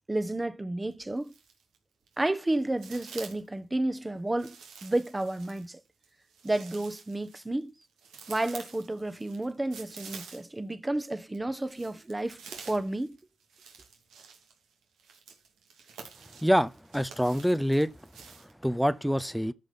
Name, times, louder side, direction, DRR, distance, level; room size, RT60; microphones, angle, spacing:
voice 1, 0.1-1.3 2.2-4.5 4.8-5.8 6.4-7.7 8.3-13.2, right 1 dB, 20° right, 1.2 m, -31 dB
sound 1, 0.9-1.8 2.1-3.5 4.4-10.7 11.0-18.5, right 6 dB, 90° right, 2.8 m, -49 dB
voice 2, 16.4-17.9 18.6-19.5, equal, ahead, 0.7 m, -25 dB
13.0 x 6.3 x 5.3 m
cardioid pair, 55°, 0 cm